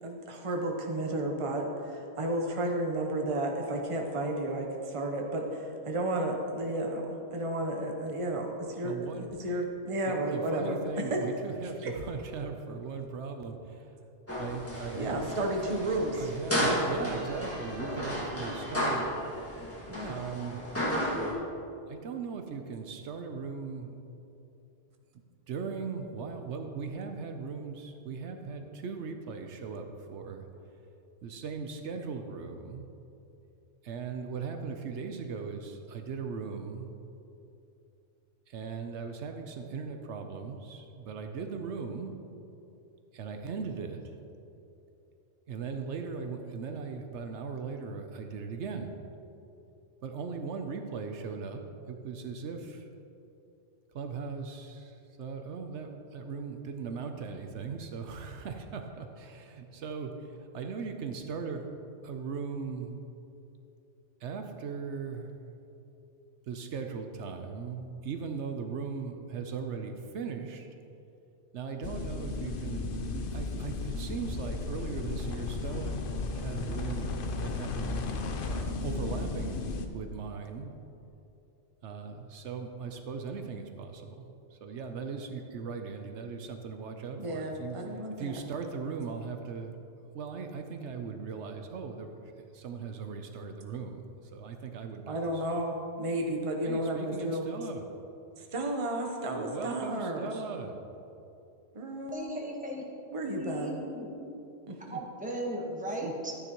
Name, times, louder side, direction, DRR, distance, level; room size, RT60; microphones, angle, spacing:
voice 1, 0.0-11.2 11.8-11.9 15.0-16.3 19.9-20.2 87.2-88.4 95.1-97.4 98.4-100.3 101.7-102.4 103.1-103.8 104.7-105.0 106.0-106.1, right 1 dB, 30° right, 1 dB, 0.9 m, -32 dB
voice 2, 8.8-9.3 10.1-13.9 14.4-15.3 16.2-19.1 20.1-20.7 21.9-24.0 25.5-30.5 31.2-32.9 33.8-36.9 38.5-42.2 43.1-44.0 45.5-48.9 50.0-52.9 53.9-61.7 62.0-63.0 64.2-65.3 66.5-70.7 71.5-76.1 76.4-77.2 77.4-78.0 78.4-80.7 81.8-84.3 84.5-87.8 88.2-89.8 90.1-94.0 94.3-95.4 96.6-97.9 99.3-100.8, right 5 dB, 75° right, 5 dB, 1.0 m, -38 dB
sound 1, 14.3-21.3, equal, 10° left, 1.8 m, -33 dB
sound 2, 71.8-79.9, left 3 dB, 55° left, 0.8 m, -34 dB
voice 3, 102.1-102.8 103.2-104.3 104.9-106.3, equal, 5° right, -2 dB, 1.2 m, -37 dB
12.0 x 9.7 x 3.0 m, 2.8 s
omnidirectional pair, 1.2 m